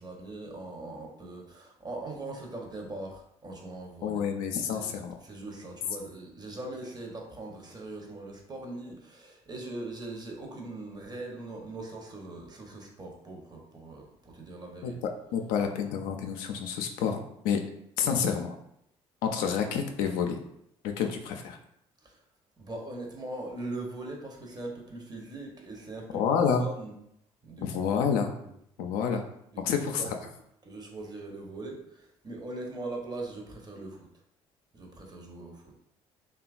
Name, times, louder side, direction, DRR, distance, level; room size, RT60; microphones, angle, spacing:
voice 1, 0.0-4.2 4.5-15.0 22.0-22.1 22.6-26.9 27.4-27.9 28.4-28.5 29.5-30.1 30.6-34.1 34.7-35.7, right 2 dB, 25° right, 0 dB, 0.8 m, -41 dB
voice 2, 4.0-5.2 14.8-14.9 15.3-17.2 17.4-17.6 18.0-18.6 19.2-20.4 20.8-21.6 26.1-26.6 27.6-28.3 28.8-29.2 29.6-30.2, left 7 dB, 75° left, 4 dB, 0.4 m, -28 dB
2.8 x 2.3 x 2.4 m, 0.76 s
hypercardioid pair, 55°, 15 cm